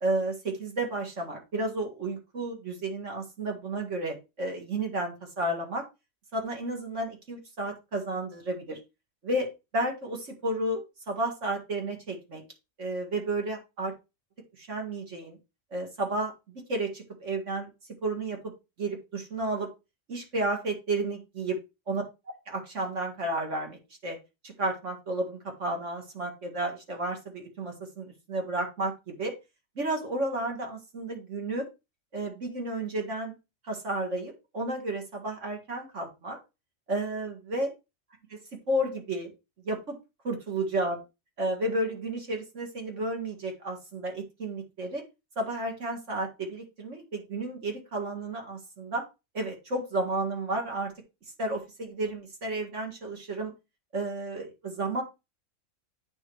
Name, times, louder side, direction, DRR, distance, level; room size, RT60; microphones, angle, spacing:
voice 1, 0.0-5.8 6.3-8.8 9.2-12.4 12.8-13.9 14.6-15.4 15.7-17.7 18.0-18.4 18.8-19.7 20.1-21.6 21.9-22.0 22.5-24.2 24.4-29.3 29.8-31.7 32.1-33.3 33.6-36.4 36.9-37.7 38.3-38.4 38.7-39.3 39.6-40.0 40.2-41.0 41.4-45.0 45.4-49.0 49.3-50.9 51.4-53.5 53.9-55.0, right 2 dB, 65° right, 2 dB, 2.1 m, -32 dB
8.7 x 3.2 x 4.6 m, 0.26 s
omnidirectional pair, 1.4 m